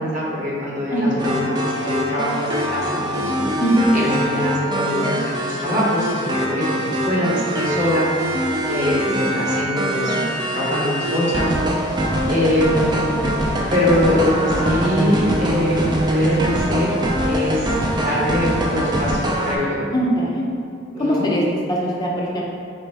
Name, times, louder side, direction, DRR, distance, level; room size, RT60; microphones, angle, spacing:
voice 1, 0.1-3.5 3.9-10.2 10.5-12.0 12.3-16.9 17.2-19.8 20.9-21.3, equal, 40° right, -7 dB, 1.1 m, -23 dB
voice 2, 0.9-1.4 3.6-3.9 19.9-20.4 21.0-21.4 21.7-22.4, equal, 20° left, -4 dB, 0.6 m, -21 dB
sound 1, 1.2-19.5, equal, 20° right, 0.4 m, -23 dB
4.4 x 3.2 x 3.3 m, 2.4 s
head